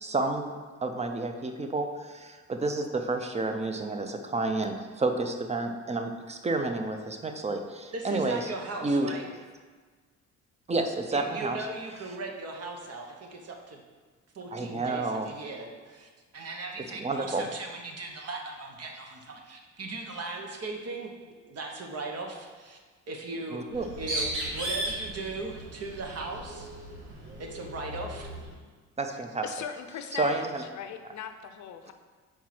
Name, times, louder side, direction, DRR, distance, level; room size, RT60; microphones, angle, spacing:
voice 1, 0.0-0.5 0.8-8.5 8.8-9.1 10.7-11.6 14.5-15.3 17.0-17.5 23.5-23.9 29.0-29.4 30.1-30.6, right 2 dB, 20° right, 5 dB, 0.7 m, -30 dB
voice 2, 7.9-9.3 11.1-13.8 14.3-21.1 21.5-22.8 23.1-26.7 27.4-28.3, right 3 dB, 55° right, 2 dB, 1.1 m, -38 dB
Bird, 23.7-28.5, right 1 dB, 90° right, 2.0 m, -36 dB
voice 3, 29.4-30.5 30.7-31.9, left 8 dB, 70° left, 7 dB, 0.6 m, -39 dB
4.6 x 4.5 x 5.9 m, 1.4 s
cardioid pair, 90°, 30 cm